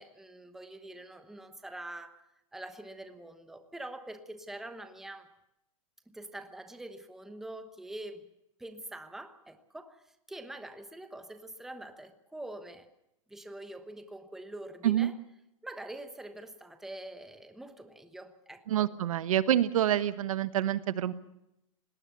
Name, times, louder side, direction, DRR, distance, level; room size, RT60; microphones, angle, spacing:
voice 1, 0.0-2.2 2.5-5.3 6.1-8.2 8.6-12.9 13.3-15.1 15.6-18.9, right 1 dB, ahead, 8 dB, 1.0 m, -45 dB
voice 2, 18.7-21.1, right 11 dB, 75° right, 13 dB, 1.3 m, -27 dB
20.5 x 18.5 x 7.0 m, 0.86 s
hypercardioid pair, 145°, 18 cm